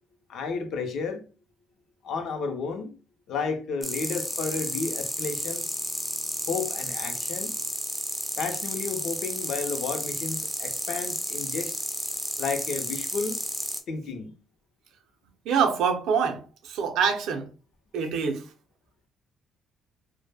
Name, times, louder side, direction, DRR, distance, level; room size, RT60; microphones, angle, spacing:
voice 1, 0.3-1.3 2.0-3.0 3.3-5.7 6.5-7.6 8.4-11.7 12.4-13.4 13.9-14.3, left 5 dB, 60° left, 0.5 m, -32 dB
sound 1, 3.8-13.8, equal, ahead, 0.4 m, -32 dB
voice 2, 15.5-17.5 17.9-18.5, right 6 dB, 70° right, 0.5 m, -25 dB
2.1 x 2.0 x 3.2 m
cardioid pair, 170°, 0 cm